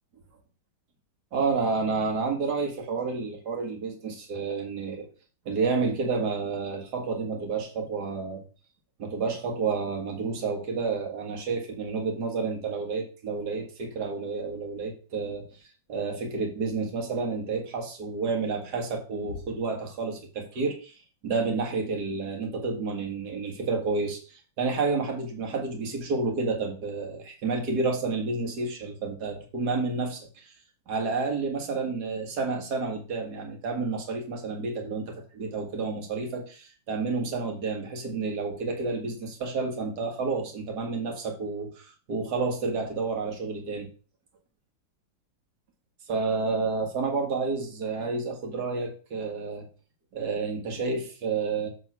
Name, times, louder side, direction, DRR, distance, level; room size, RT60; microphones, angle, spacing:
voice 1, 1.3-5.1 5.5-8.4 9.0-15.5 15.9-30.5 30.9-43.9 46.1-49.7 50.1-51.7, right 4 dB, 50° right, 2 dB, 2.2 m, -30 dB
8.2 x 3.7 x 5.9 m, 0.36 s
omnidirectional pair, 2.4 m